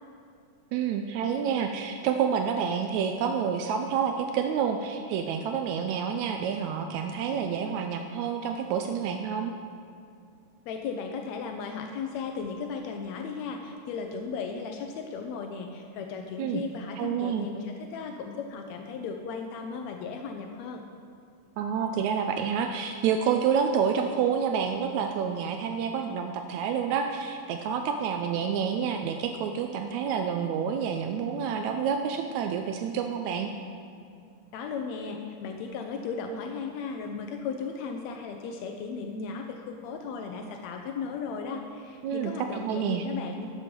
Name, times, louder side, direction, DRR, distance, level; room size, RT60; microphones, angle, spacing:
voice 1, 0.7-9.5 16.4-16.6 17.0-17.5 21.6-33.5 42.0-43.0, right 7 dB, 90° right, 5 dB, 1.6 m, -28 dB
voice 2, 10.7-20.9 34.5-43.5, left 5 dB, 90° left, 4 dB, 1.5 m, -36 dB
13.0 x 6.3 x 5.2 m, 2.4 s
omnidirectional pair, 3.9 m